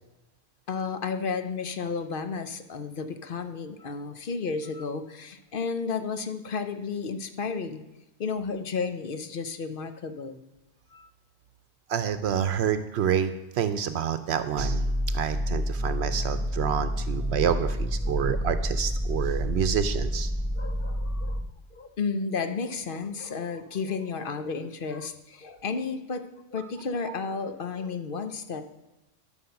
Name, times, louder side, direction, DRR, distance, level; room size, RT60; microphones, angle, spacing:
voice 1, 0.7-7.8 8.2-10.4 10.9-11.1 18.0-18.3 20.5-21.4 21.7-28.6, left 5 dB, 55° left, 9 dB, 0.9 m, -32 dB
voice 2, 11.9-14.8 15.1-20.3 27.0-27.1, right 8 dB, 75° right, 11 dB, 0.8 m, -28 dB
sound 1, 14.6-21.4, equal, 20° left, 1.0 m, -29 dB
11.5 x 5.9 x 5.7 m, 1.0 s
omnidirectional pair, 1.1 m